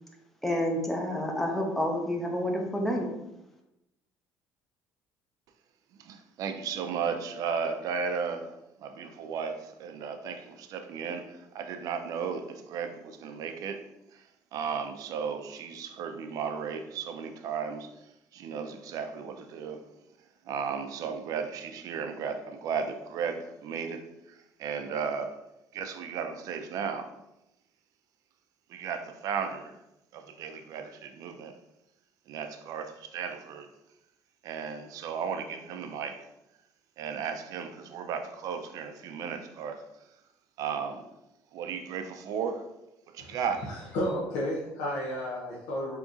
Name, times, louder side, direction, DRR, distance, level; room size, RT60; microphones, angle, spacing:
voice 1, 0.4-3.1, equal, 5° left, 0.6 m, -29 dB
voice 2, 6.0-13.8 14.1-14.2 14.5-17.9 18.3-19.8 20.5-25.4 25.7-27.1 28.7-29.8 30.1-31.5 32.3-33.7 34.4-36.2 37.0-39.8 40.6-41.1 41.5-42.6 43.1-43.7, right 6 dB, 65° right, 0.4 m, -35 dB
voice 3, 43.7-46.0, left 1 dB, 80° left, 0.6 m, -32 dB
3.7 x 2.9 x 2.5 m
cardioid pair, 105°, 7 cm